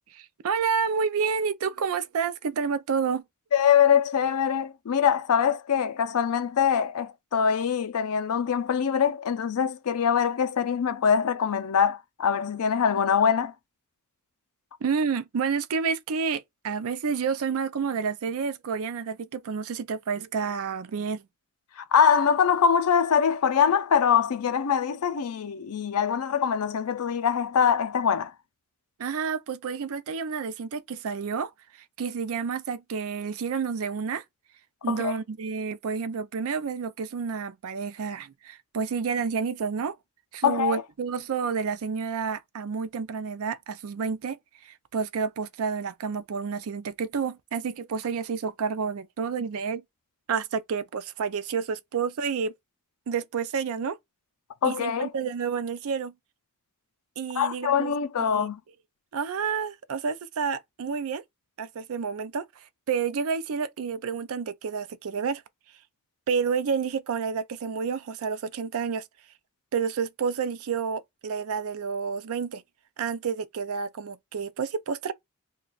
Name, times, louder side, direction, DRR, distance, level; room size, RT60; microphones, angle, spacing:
voice 1, 0.1-3.2 14.8-21.2 29.0-31.5 32.0-34.2 34.8-39.9 40.3-49.8 50.3-52.5 53.1-54.0 54.6-56.1 57.2-57.9 58.2-58.5 59.1-61.2 61.6-62.5 62.9-65.4 66.3-69.0 69.7-72.6 73.0-75.1, right 6 dB, 65° right, 0.4 m, -29 dB
voice 2, 3.5-13.5 21.8-28.3 34.9-35.2 40.4-40.8 54.6-55.1 57.3-58.6, left 7 dB, 75° left, 0.5 m, -23 dB
2.4 x 2.3 x 3.8 m
head